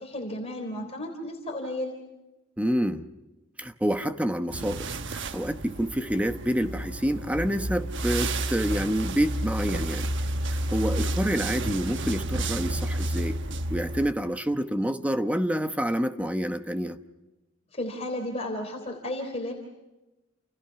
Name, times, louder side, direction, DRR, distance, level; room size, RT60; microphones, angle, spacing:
voice 1, 0.0-1.9 17.7-19.5, left 1 dB, 30° left, 2 dB, 3.5 m, -33 dB
voice 2, 2.6-3.0 3.6-10.1 10.5-13.4 13.7-17.0, equal, 5° right, 8 dB, 1.0 m, -28 dB
sound 1, 4.5-14.1, right 1 dB, 60° right, 1.1 m, -31 dB
29.5 x 29.5 x 5.8 m, 1.0 s
head